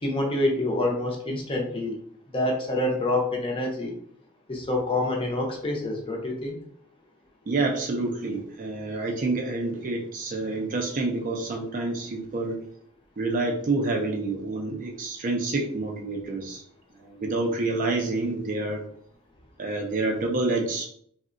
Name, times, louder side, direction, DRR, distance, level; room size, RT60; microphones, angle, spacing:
voice 1, 0.0-2.0 2.3-3.9 4.5-6.6, left 2 dB, 25° left, 0 dB, 0.5 m, -27 dB
voice 2, 7.5-12.6 13.2-16.6 17.0-18.8 19.6-20.9, right 2 dB, 35° right, 2 dB, 0.4 m, -28 dB
3.5 x 2.1 x 2.5 m, 0.64 s
head